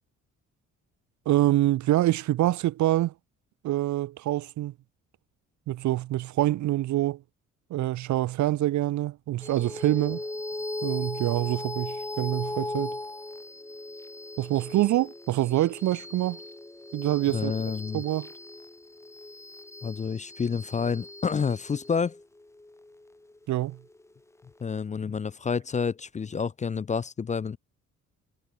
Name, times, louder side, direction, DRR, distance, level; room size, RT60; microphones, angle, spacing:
voice 1, 1.3-3.1 3.6-4.7 5.7-7.2 7.7-10.2 10.8-13.0 14.4-16.4 16.9-17.5 17.9-18.3 23.5-23.8, right 15 dB, 70° right, 0.7 m, -25 dB
sound 1, 9.4-24.2, left 2 dB, 10° left, 1.0 m, -39 dB
voice 2, 17.3-18.0 19.8-22.1 24.6-27.6, left 5 dB, 25° left, 0.5 m, -29 dB
cardioid pair, 90°, 30 cm